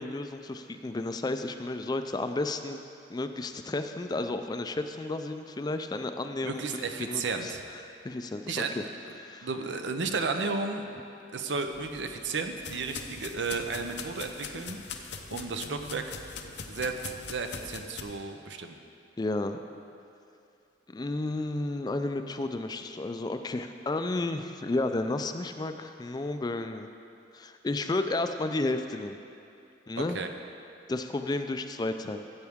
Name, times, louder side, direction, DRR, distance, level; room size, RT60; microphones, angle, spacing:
voice 1, 0.0-2.8 3.1-7.5 8.0-8.6 9.2-9.5 19.2-19.6 20.9-26.9 27.3-29.2 29.9-30.2 30.9-32.2, left 2 dB, 25° left, 7 dB, 0.4 m, -32 dB
voice 2, 6.4-7.6 8.5-8.7 9.4-10.9 11.3-16.2 16.7-18.8 30.0-30.3, right 4 dB, 80° right, 6 dB, 0.7 m, -33 dB
sound 1, 11.7-18.0, left 5 dB, 70° left, 0.7 m, -42 dB
14.0 x 8.1 x 3.6 m, 2.6 s
head